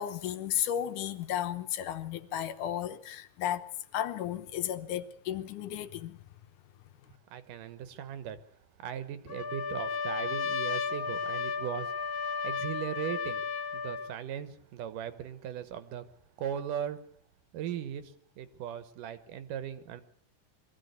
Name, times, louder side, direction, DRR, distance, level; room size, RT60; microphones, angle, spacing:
voice 1, 0.0-6.2, left 11 dB, 75° left, 2.5 m, -34 dB
voice 2, 7.3-8.4 8.8-12.1 12.4-16.1 16.4-17.0 17.5-20.0, right 9 dB, 80° right, 2.9 m, -38 dB
Trumpet, 9.3-14.1, left 5 dB, 50° left, 1.1 m, -33 dB
23.0 x 15.0 x 8.1 m
omnidirectional pair, 3.7 m